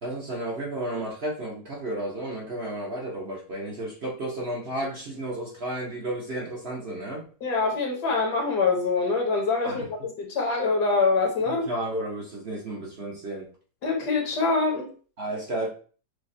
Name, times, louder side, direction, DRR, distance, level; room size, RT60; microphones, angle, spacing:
voice 1, 0.0-7.3 9.6-9.9 11.5-13.5 15.2-15.7, right 1 dB, 45° right, -3 dB, 1.0 m, -32 dB
voice 2, 7.4-11.6 13.8-14.9, left 4 dB, 70° left, 1 dB, 1.6 m, -24 dB
6.4 x 2.3 x 2.7 m, 0.40 s
omnidirectional pair, 1.9 m